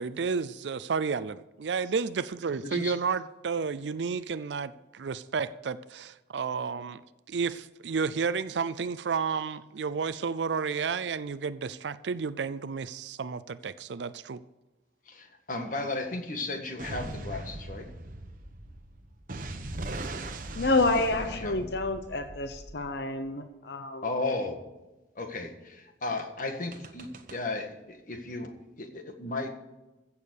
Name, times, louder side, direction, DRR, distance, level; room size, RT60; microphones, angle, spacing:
voice 1, 0.0-7.0 7.3-14.4, right 5 dB, 80° right, 0.5 m, -31 dB
voice 2, 2.6-2.9 15.1-17.9 20.9-21.7 24.0-24.6 25.2-29.6, left 2 dB, 50° left, 1.7 m, -35 dB
sound 1, 16.8-23.2 26.7-27.4, right 2 dB, 50° right, 1.1 m, -40 dB
voice 3, 20.6-24.0, left 2 dB, 65° left, 0.8 m, -28 dB
15.5 x 7.1 x 6.5 m
head